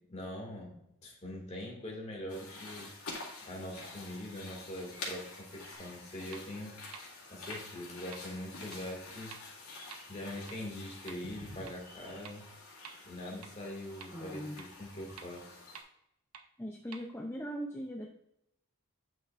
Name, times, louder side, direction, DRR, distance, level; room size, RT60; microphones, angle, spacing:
voice 1, 0.1-0.8 1.0-2.9 3.4-6.8 7.3-9.4 10.1-12.5 13.0-15.6, left 1 dB, 30° left, -1 dB, 2.1 m, -43 dB
sound 1, 2.3-15.8, left 3 dB, 80° left, 2.5 m, -48 dB
sound 2, 5.7-5.8 6.3-6.4 6.9-7.0 7.5-7.6 8.1-8.2 8.7-8.8 9.3-9.4 9.9-10.0 10.5-10.6 11.1-11.2 11.7-11.8 12.3-12.4 12.8-12.9 13.4-13.5 14.0-14.1 14.6-14.7 15.2-15.3 15.8-15.9 16.3-16.4 16.9-17.0, right 6 dB, 85° right, 0.8 m, -48 dB
voice 2, 14.1-14.6 16.6-18.1, equal, 10° left, 1 dB, 0.5 m, -40 dB
8.9 x 5.7 x 2.5 m, 0.78 s
head